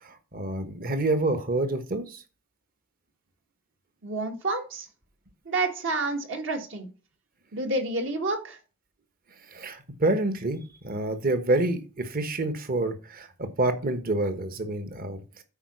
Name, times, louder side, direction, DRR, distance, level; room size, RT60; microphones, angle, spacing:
voice 1, 0.0-2.2 9.5-15.2, right 2 dB, 45° right, 9 dB, 1.2 m, -28 dB
voice 2, 4.0-4.9 5.5-6.9 7.5-8.6, right 2 dB, 60° right, 4 dB, 1.7 m, -29 dB
8.8 x 4.8 x 6.3 m, 0.34 s
head